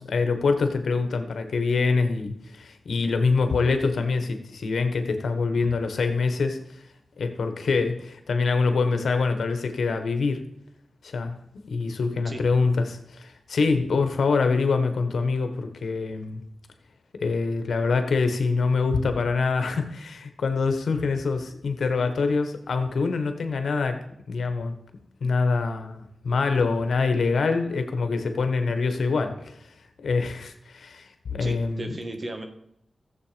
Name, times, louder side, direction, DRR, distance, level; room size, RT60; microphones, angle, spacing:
voice 1, 0.0-6.8 7.2-10.4 11.0-11.3 11.7-16.4 17.1-24.0 24.3-24.7 25.2-29.7 30.0-31.9, left 4 dB, 80° left, 7 dB, 1.5 m, -25 dB
voice 2, 31.4-32.4, right 2 dB, 45° right, 6 dB, 1.8 m, -35 dB
14.0 x 8.0 x 5.2 m, 0.76 s
cardioid pair, 65°, 0 cm